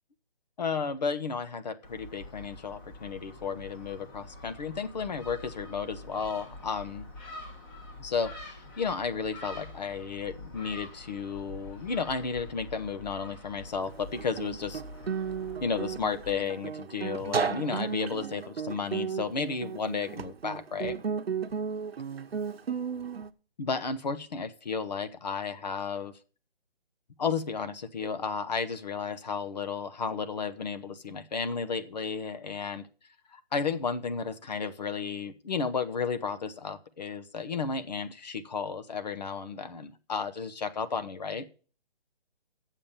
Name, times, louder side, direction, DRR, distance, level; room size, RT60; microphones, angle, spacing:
voice 1, 0.6-7.1 8.0-14.8 15.6-21.0 23.6-26.1 27.2-32.9 33.3-41.5, left 5 dB, 40° left, 12 dB, 1.0 m, -33 dB
Gull seagull, 1.8-16.4, left 2 dB, 20° left, 1.9 m, -46 dB
Guitar, 13.9-23.3, right 6 dB, 70° right, 1.0 m, -34 dB
7.4 x 7.2 x 8.3 m, 0.39 s
hypercardioid pair, 165°, 32 cm